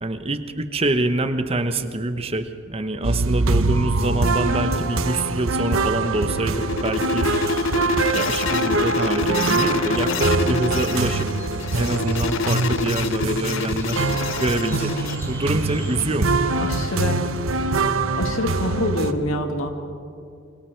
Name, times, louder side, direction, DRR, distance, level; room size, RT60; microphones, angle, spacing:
voice 1, 0.0-7.3 8.1-11.3 11.7-14.1 14.4-14.9 15.3-16.4, right 2 dB, 30° right, 9 dB, 1.0 m, -25 dB
sound 1, 3.0-19.1, right 3 dB, 80° right, 1.0 m, -24 dB
sound 2, 5.7-15.2, left 4 dB, 70° left, 0.6 m, -26 dB
sound 3, 7.2-16.5, left 1 dB, 10° left, 2.8 m, -45 dB
voice 2, 16.6-17.2 18.2-19.7, left 1 dB, 90° left, 5 dB, 2.0 m, -26 dB
28.0 x 24.0 x 4.6 m, 2.4 s
head